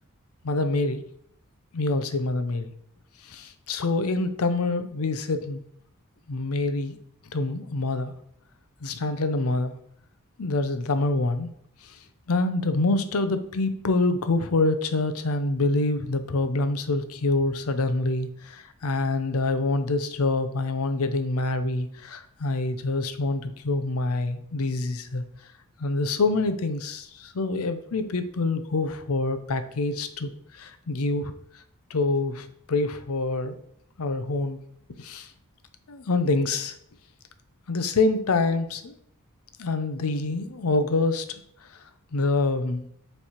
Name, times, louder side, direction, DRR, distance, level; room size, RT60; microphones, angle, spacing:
voice 1, 0.4-1.0 1.7-2.7 3.2-5.6 6.3-7.0 7.3-8.1 8.8-9.8 10.4-11.5 11.8-11.9 12.3-25.2 25.8-31.3 31.9-33.6 34.0-34.6 35.0-35.3 35.9-36.7 37.7-38.9 39.6-41.2 42.1-42.9, left 2 dB, 75° left, 9 dB, 0.6 m, -26 dB
7.1 x 3.3 x 4.3 m, 0.68 s
head